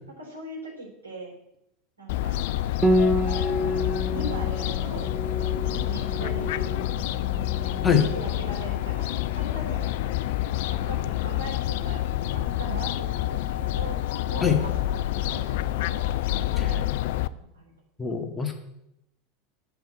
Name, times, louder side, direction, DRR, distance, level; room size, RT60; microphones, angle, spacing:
voice 1, 0.2-1.3 2.0-3.1 4.1-5.1 5.6-6.8 7.6-10.3 10.7-12.0 12.3-14.0 14.3-16.0 16.4-16.9 17.3-17.7, right 1 dB, 85° right, -1 dB, 3.7 m, -40 dB
Fowl, 2.1-17.3, left 14 dB, 60° left, 0.4 m, -28 dB
Piano, 2.8-12.2, equal, 15° right, 0.9 m, -30 dB
voice 2, 18.0-18.5, left 7 dB, 15° left, 2 dB, 2.1 m, -23 dB
8.0 x 5.7 x 7.8 m, 0.81 s
figure-of-eight pair, 80°, 0 cm